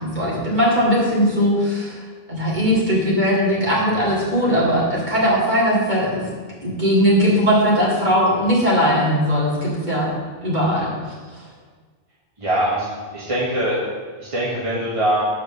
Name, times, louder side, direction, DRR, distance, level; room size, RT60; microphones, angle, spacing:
voice 1, 0.0-2.0 2.3-6.2 6.6-10.1 10.4-11.4, equal, 45° right, -6 dB, 2.5 m, -19 dB
voice 2, 12.4-12.9 13.1-13.8 14.2-15.2, right 1 dB, 30° right, -8 dB, 1.5 m, -22 dB
7.0 x 5.0 x 6.6 m, 1.5 s
omnidirectional pair, 1.0 m